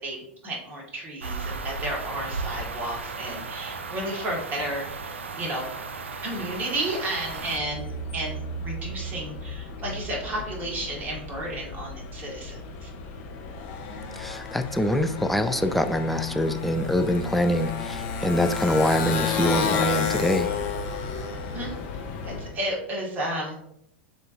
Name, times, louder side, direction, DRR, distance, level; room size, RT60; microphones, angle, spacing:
voice 1, 0.0-5.7 6.2-12.9 21.5-21.8 22.2-23.5, right 1 dB, 30° right, -2 dB, 1.7 m, -32 dB
sound 1, 1.2-7.6, right 4 dB, 80° right, 0.4 m, -35 dB
Motorcycle, 7.2-22.6, left 4 dB, 50° left, 0.9 m, -32 dB
voice 2, 14.1-20.5, left 1 dB, ahead, 7 dB, 0.4 m, -24 dB
6.8 x 2.7 x 2.6 m, 0.76 s
figure-of-eight pair, 90°, 7 cm